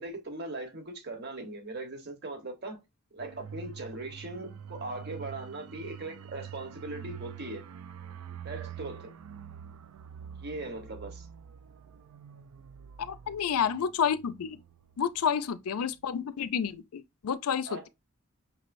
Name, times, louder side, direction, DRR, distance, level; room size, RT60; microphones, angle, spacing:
voice 1, 0.0-2.8 3.1-7.6 8.4-9.1 10.4-11.3 17.6-17.9, right 2 dB, 50° right, 1.1 m, -39 dB
sound 1, 3.2-15.5 15.8-16.0, right 8 dB, 80° right, 0.4 m, -46 dB
voice 2, 13.1-14.6 15.0-17.9, left 7 dB, 85° left, 0.4 m, -30 dB
5.7 x 3.1 x 2.5 m
head